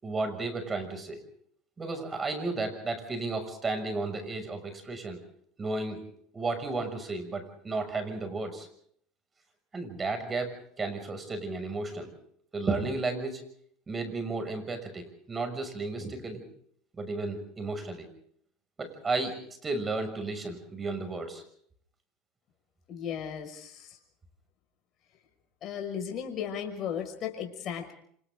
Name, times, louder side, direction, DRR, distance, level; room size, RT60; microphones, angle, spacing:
voice 1, 0.0-1.2 1.8-5.2 5.6-6.1 6.3-8.7 9.7-12.1 12.5-13.4 13.9-16.4 17.0-18.1 18.8-21.4, right 3 dB, 25° right, 7 dB, 6.5 m, -33 dB
voice 2, 22.9-24.0 25.6-27.9, left 8 dB, 45° left, 4 dB, 5.9 m, -35 dB
28.5 x 27.0 x 3.8 m, 0.65 s
hypercardioid pair, 95°, 0 cm